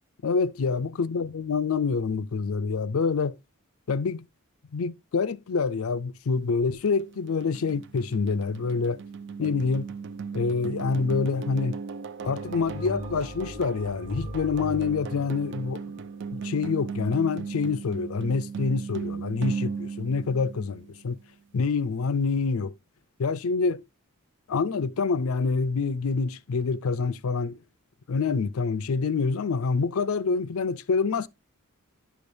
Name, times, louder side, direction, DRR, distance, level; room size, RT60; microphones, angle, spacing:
voice 1, 0.2-3.4 3.9-4.3 4.7-9.0 9.4-9.9 10.3-11.8 12.2-15.8 16.3-21.2 21.5-22.7 23.2-23.8 24.5-27.6 28.1-31.3, left 4 dB, 70° left, 0.5 m, -26 dB
sound 1, 6.9-21.0, right 5 dB, 55° right, 0.4 m, -37 dB
sound 2, 12.2-16.6, equal, 30° right, 1.7 m, -39 dB
11.0 x 5.1 x 2.6 m
head